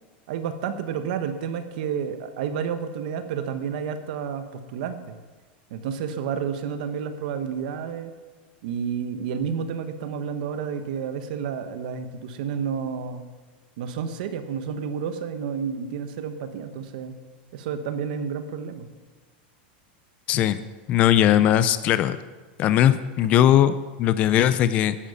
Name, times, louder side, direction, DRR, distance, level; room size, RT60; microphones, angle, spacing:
voice 1, 0.3-5.2 5.7-8.1 8.6-13.2 13.8-17.2 17.5-18.9, right 7 dB, 55° right, 9 dB, 1.1 m, -30 dB
voice 2, 20.3-20.6 20.9-22.2 22.6-25.0, left 11 dB, 25° left, 13 dB, 0.4 m, -19 dB
11.0 x 10.0 x 7.1 m, 1.3 s
supercardioid pair, 175°, 6 cm